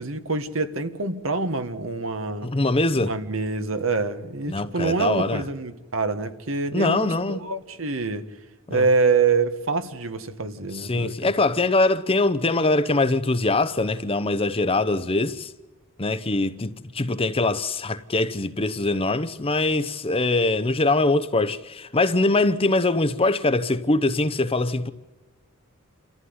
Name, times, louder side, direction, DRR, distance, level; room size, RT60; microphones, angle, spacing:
voice 1, 0.0-2.5 2.9-8.2 8.7-11.3, right 4 dB, 75° right, 1.6 m, -25 dB
voice 2, 2.4-3.1 4.5-5.4 6.7-7.4 8.7-8.9 10.7-15.5 16.0-24.9, left 2 dB, 30° left, 0.9 m, -23 dB
28.0 x 14.5 x 9.7 m
head